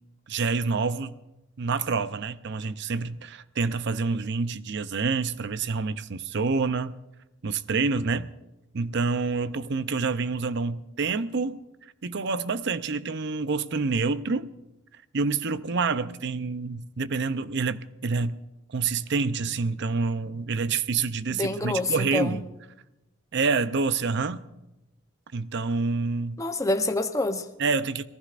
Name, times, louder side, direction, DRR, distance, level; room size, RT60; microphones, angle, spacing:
voice 1, 0.3-1.2 1.6-6.9 7.4-8.3 8.7-11.6 12.0-14.5 15.1-18.4 18.7-22.5 23.3-24.4 25.3-26.4 27.6-28.1, right 4 dB, 60° right, 0.6 m, -27 dB
voice 2, 21.3-22.4 26.4-27.4, left 2 dB, 15° left, 0.8 m, -27 dB
26.0 x 19.5 x 2.5 m
head